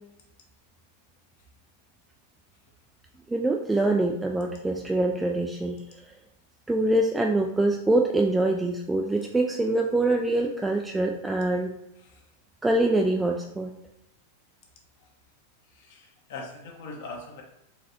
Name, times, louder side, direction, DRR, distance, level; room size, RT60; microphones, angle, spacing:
voice 1, 3.3-6.0 6.7-11.8 12.6-13.8, right 2 dB, 10° right, 1 dB, 0.3 m, -24 dB
voice 2, 15.7-17.4, left 3 dB, 55° left, 0 dB, 1.0 m, -41 dB
4.4 x 3.1 x 2.8 m, 0.84 s
figure-of-eight pair, 90°, 0 cm